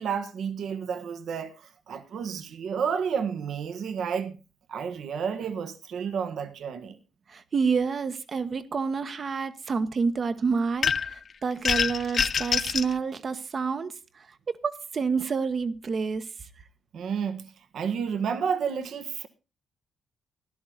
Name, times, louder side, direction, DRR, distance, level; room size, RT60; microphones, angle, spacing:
voice 1, 0.0-4.3 4.7-7.0 16.9-19.3, right 7 dB, 70° right, 1.4 m, -31 dB
voice 2, 7.3-16.3, right 5 dB, 50° right, 1.2 m, -28 dB
sound 1, 10.8-11.2 11.6-12.9, left 6 dB, 55° left, 0.6 m, -25 dB
13.5 x 11.0 x 4.0 m
cardioid pair, 70°, 0 cm